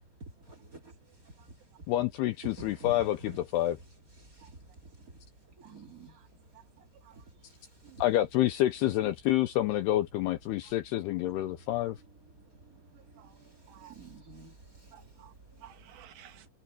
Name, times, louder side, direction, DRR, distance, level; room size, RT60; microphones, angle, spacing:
voice 1, 0.2-1.5 2.4-3.4 4.2-5.2 5.5-6.2 7.1-8.0 11.5-15.6 16.1-16.3, right 2 dB, 30° right, 1.7 m, -50 dB
voice 2, 1.9-3.8 8.0-12.0, left 14 dB, 80° left, 2.4 m, -28 dB
voice 3, 6.5-7.3 7.8-8.0 10.6-10.7 12.7-13.4 13.7-14.0 14.9-16.5, right 11 dB, 70° right, 3.3 m, -56 dB
omnidirectional pair, 5.4 m